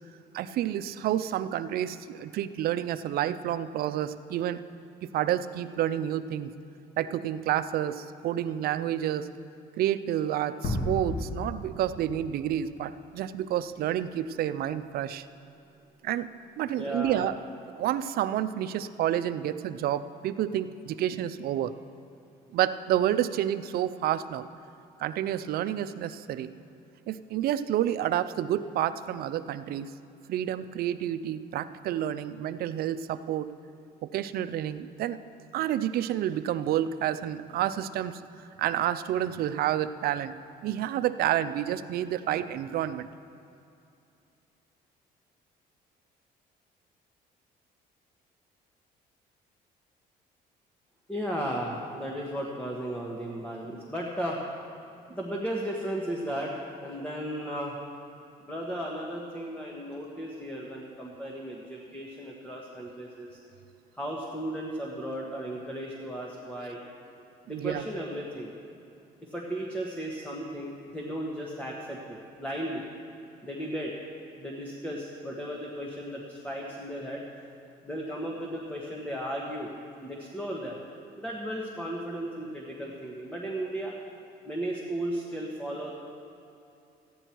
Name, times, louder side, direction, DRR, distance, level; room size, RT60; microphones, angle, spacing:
voice 1, 0.3-4.6 5.0-6.5 7.0-9.3 9.8-15.3 16.0-17.3 17.8-21.7 22.5-24.5 25.0-26.5 27.1-29.9 30.3-33.5 34.0-35.2 35.5-40.3 40.6-43.1 67.5-67.9, right 11 dB, 65° right, 12 dB, 0.5 m, -29 dB
sound 1, 10.6-13.1, left 1 dB, 60° left, 2.3 m, -33 dB
voice 2, 16.7-17.3 51.1-54.4 55.1-56.5 56.8-57.7 58.4-63.4 63.9-66.8 67.5-68.5 69.2-72.8 73.4-73.9 74.4-77.2 77.8-79.7 80.0-80.8 81.2-83.9 84.4-85.9, equal, 10° left, -2 dB, 1.4 m, -35 dB
14.5 x 10.0 x 4.5 m, 2.7 s
cardioid pair, 110°, 17 cm